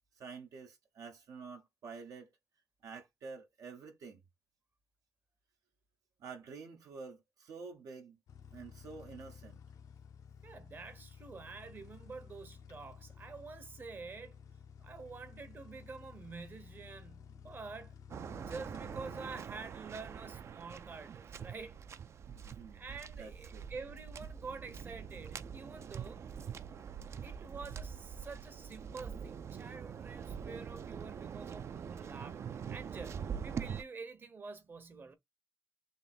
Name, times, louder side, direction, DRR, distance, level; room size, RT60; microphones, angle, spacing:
voice 1, 0.1-2.3 2.8-4.2 6.2-8.2 8.5-9.6 22.3-22.8 23.2-23.7, right 5 dB, 80° right, 0.9 m, -49 dB
sound 1, 8.3-19.4, left 7 dB, 90° left, 0.7 m, -54 dB
voice 2, 10.4-14.4 14.8-17.9 18.3-21.8 22.7-26.2 27.2-35.1, right 4 dB, 35° right, 0.8 m, -48 dB
Waves surf, 18.1-33.8, right 7 dB, 50° right, 0.4 m, -44 dB
3.4 x 2.6 x 4.2 m
cardioid pair, 125°, 6 cm